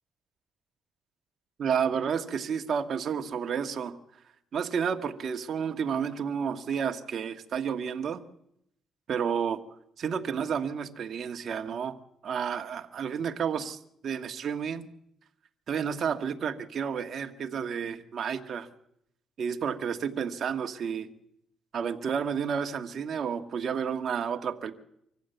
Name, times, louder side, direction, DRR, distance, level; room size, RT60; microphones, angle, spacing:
voice 1, 1.6-4.0 4.5-8.2 9.1-9.6 10.0-12.0 12.2-13.8 14.0-14.8 15.7-18.7 19.4-21.1 21.7-24.7, right 7 dB, 60° right, 5 dB, 1.5 m, -31 dB
24.5 x 15.0 x 8.0 m, 0.75 s
cardioid pair, 90°, 0 cm